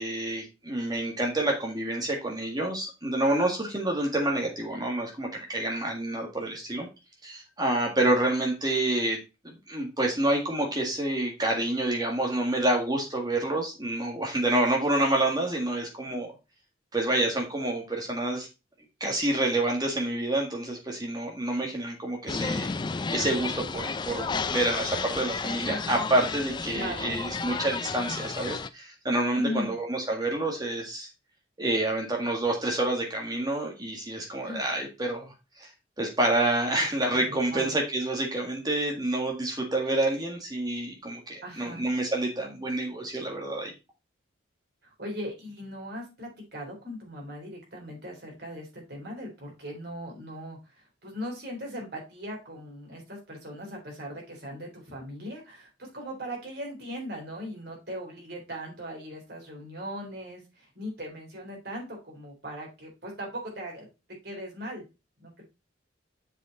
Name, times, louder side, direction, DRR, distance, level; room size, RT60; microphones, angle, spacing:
voice 1, 0.0-6.9 7.2-9.2 9.4-16.3 16.9-18.5 19.0-31.1 31.6-35.7 36.0-43.7, right 1 dB, 20° right, 0 dB, 1.7 m, -28 dB
sound 1, 22.3-28.7, left 4 dB, 20° left, 0.3 m, -32 dB
voice 2, 26.7-27.2 29.4-29.8 34.4-34.6 36.8-36.9 37.3-37.7 41.4-41.8 44.8-63.9 64.2-64.8 65.2-65.4, equal, 55° right, -1 dB, 3.9 m, -39 dB
7.5 x 5.1 x 4.1 m, 0.27 s
head